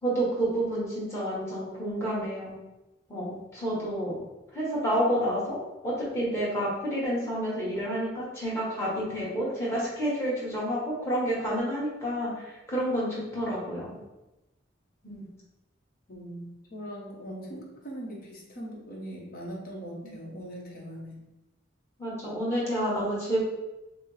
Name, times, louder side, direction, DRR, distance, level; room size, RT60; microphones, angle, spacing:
voice 1, 0.0-2.5 3.1-4.2 4.5-5.6 5.8-14.0 15.0-15.3 20.0-20.1 22.0-23.4, equal, 15° left, -7 dB, 1.3 m, -29 dB
voice 2, 16.1-21.2, equal, 45° left, -2 dB, 0.9 m, -40 dB
6.0 x 2.0 x 3.2 m, 0.99 s
head